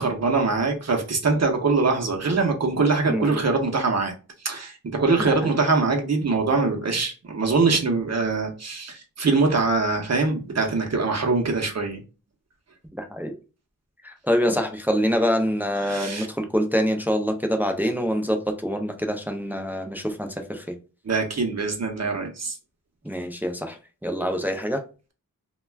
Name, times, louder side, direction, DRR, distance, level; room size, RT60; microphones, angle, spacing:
voice 1, 0.0-4.1 4.4-12.0 15.8-16.3 21.1-22.5, right 3 dB, 50° right, 0.7 m, -23 dB
voice 2, 3.1-3.4 5.2-5.6 12.9-13.4 14.0-20.8 23.0-23.8 24.0-24.8, equal, 5° right, 0.4 m, -25 dB
2.3 x 2.2 x 3.2 m
wide cardioid pair, 100°, 34 cm